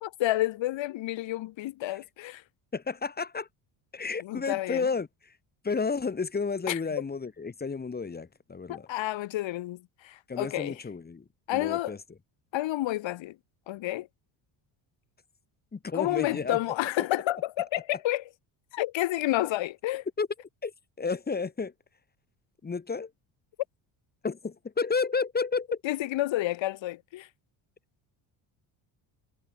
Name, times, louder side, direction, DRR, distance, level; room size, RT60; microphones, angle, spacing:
voice 1, 0.0-2.4 4.2-4.9 6.7-6.8 8.7-10.8 11.5-12.0 12.5-13.3 13.7-14.1 15.9-18.2 18.7-20.0 25.8-27.3, left 15 dB, 65° left, 3.2 m, -30 dB
voice 2, 2.7-3.5 3.9-5.1 5.6-8.9 10.3-11.2 11.5-12.0 15.7-16.6 20.2-20.3 20.6-20.7 21.0-21.7 22.6-23.1 24.2-25.8, left 4 dB, 20° left, 1.6 m, -31 dB
cardioid pair, 115°, 48 cm